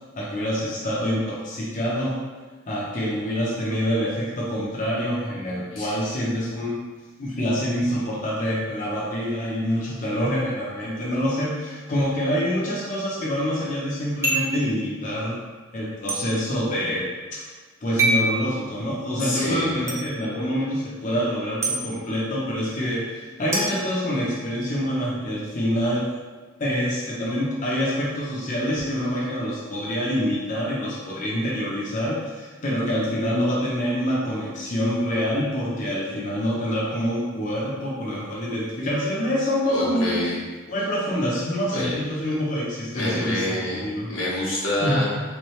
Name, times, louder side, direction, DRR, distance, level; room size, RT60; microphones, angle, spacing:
voice 1, 0.2-2.2 2.7-6.8 7.2-15.3 15.7-26.1 26.6-40.2 40.7-44.1 44.8-45.0, equal, 40° left, -6 dB, 0.6 m, -26 dB
sound 1, 14.2-14.6 16.1-16.2 18.0-18.3 19.9-20.0 21.6-21.8 23.5-24.6, right 2 dB, 15° right, 0.5 m, -24 dB
voice 2, 19.2-19.7 39.7-40.4 41.7-41.9 42.9-43.8 44.1-45.3, left 1 dB, 90° left, -6 dB, 1.2 m, -27 dB
3.5 x 3.1 x 3.1 m, 1.4 s
head